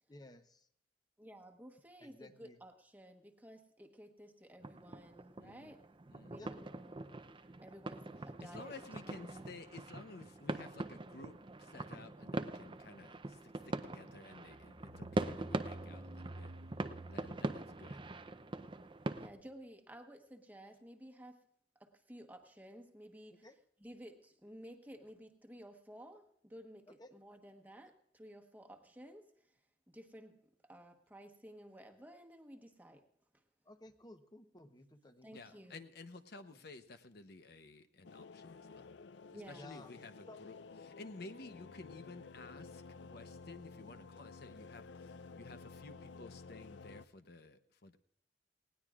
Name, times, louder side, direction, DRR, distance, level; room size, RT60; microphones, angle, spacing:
voice 1, 0.1-0.4 2.0-2.6 6.4-6.5 8.0-8.1 23.4-23.6 27.0-27.1 33.7-35.6 39.5-40.4, left 1 dB, 25° left, 8 dB, 0.9 m, -56 dB
voice 2, 1.2-5.9 6.3-7.0 7.6-9.5 19.2-21.5 21.7-23.5 23.8-29.6 29.9-33.1 33.3-33.4 35.2-35.8 39.3-39.8, equal, 10° right, 3 dB, 1.2 m, -54 dB
sound 1, 4.6-19.3, right 2 dB, 30° right, 0.5 m, -43 dB
voice 3, 5.4-5.8 6.1-6.4 8.4-16.5 17.1-18.0 35.3-38.9 39.3-48.0, left 3 dB, 60° left, 9 dB, 0.8 m, -53 dB
sound 2, 14.5-19.0, right 1 dB, 90° right, 1.6 m, -51 dB
sound 3, 38.0-47.0, left 4 dB, 90° left, 0.5 m, -53 dB
19.5 x 18.0 x 2.4 m, 0.68 s
head